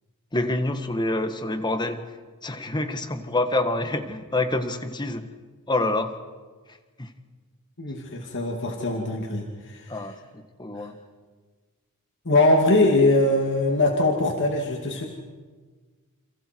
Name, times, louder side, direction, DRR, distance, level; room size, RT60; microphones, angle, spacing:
voice 1, 0.3-2.1 2.4-5.3 5.7-6.1 7.0-7.1 9.9-11.0, left 2 dB, 20° left, 8 dB, 1.6 m, -27 dB
voice 2, 7.8-10.0 10.8-10.9 12.2-15.1, left 2 dB, 55° left, 1 dB, 2.6 m, -22 dB
29.5 x 28.0 x 4.7 m, 1.4 s
head